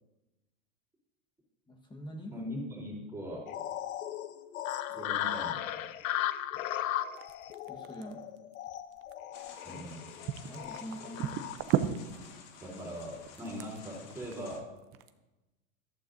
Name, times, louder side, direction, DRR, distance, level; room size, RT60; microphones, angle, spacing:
voice 1, 1.7-2.3 7.7-8.2 9.7-9.8 10.5-11.4, equal, 10° left, 2 dB, 1.3 m, -44 dB
voice 2, 2.3-3.5 4.7-5.6 9.6-10.1 12.6-14.7, equal, 5° right, -5 dB, 3.4 m, -41 dB
sound 1, 3.5-11.6, left 12 dB, 85° left, 0.7 m, -37 dB
sound 2, 7.2-9.9 10.3-15.1, right 12 dB, 35° right, 0.6 m, -35 dB
sound 3, 9.3-14.6, left 6 dB, 60° left, 1.6 m, -52 dB
14.0 x 12.0 x 2.6 m, 1.1 s
supercardioid pair, 130°, 40 cm